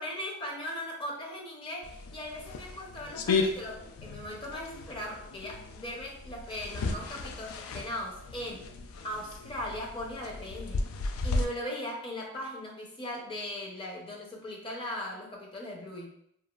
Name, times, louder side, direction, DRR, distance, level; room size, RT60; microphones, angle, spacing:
voice 1, 0.0-8.6 9.0-10.9 11.2-16.1, left 1 dB, 25° left, -1 dB, 0.5 m, -39 dB
sound 1, 1.8-11.4, left 3 dB, 80° left, 0.3 m, -35 dB
2.8 x 2.4 x 2.3 m, 0.73 s
head